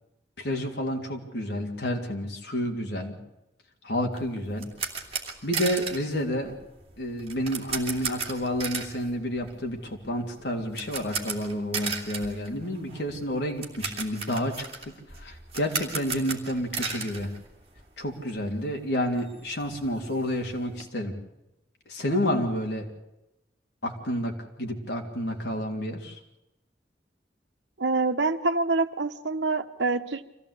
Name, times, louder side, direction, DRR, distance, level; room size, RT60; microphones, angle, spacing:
voice 1, 0.4-3.2 3.8-4.7 5.4-6.5 7.0-17.3 18.0-21.1 21.9-22.9 23.8-26.2, equal, 70° left, 2 dB, 3.3 m, -30 dB
sound 1, 4.1-18.1 18.4-18.5 18.9-19.0 19.3-20.8, right 5 dB, 35° right, 2.8 m, -36 dB
voice 2, 27.8-30.3, right 3 dB, 85° right, 9 dB, 1.2 m, -26 dB
24.5 x 15.5 x 8.4 m, 0.93 s
head